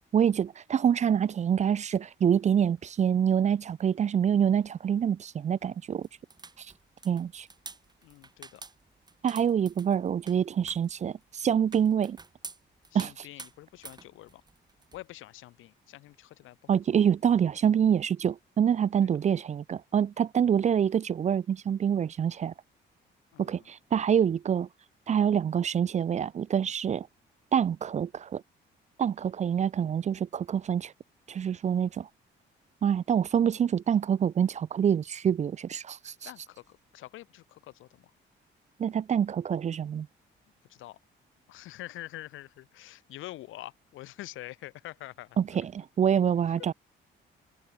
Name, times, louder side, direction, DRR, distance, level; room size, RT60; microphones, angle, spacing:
voice 1, 0.1-6.1 6.6-6.7 7.0-7.5 9.2-12.2 12.9-13.1 16.7-22.5 23.4-24.7 25.1-27.1 27.5-28.4 29.0-30.9 31.3-32.1 32.8-36.1 38.8-40.1 45.4-46.7, right 8 dB, 35° right, 0.4 m, -26 dB
sound 1, 6.0-15.0, right 3 dB, 20° right, 1.2 m, -49 dB
voice 2, 8.0-8.6 12.9-14.4 14.9-16.8 19.0-19.1 23.3-23.7 36.2-38.1 40.7-41.0 41.5-45.4 46.4-46.7, left 16 dB, 90° left, 2.4 m, -46 dB
cardioid pair, 90°, 20 cm